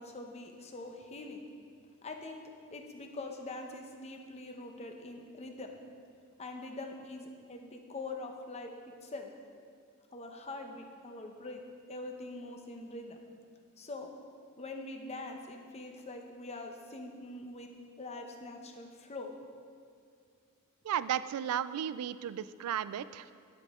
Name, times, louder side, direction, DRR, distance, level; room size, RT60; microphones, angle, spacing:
voice 1, 0.0-1.4 2.0-5.7 6.4-8.7 9.0-9.3 10.1-11.6 11.9-13.2 13.8-14.1 14.6-17.7 18.0-19.4, left 2 dB, 30° left, 4 dB, 0.7 m, -43 dB
voice 2, 20.8-23.3, right 9 dB, 85° right, 16 dB, 0.3 m, -34 dB
9.5 x 8.3 x 3.6 m, 2.3 s
head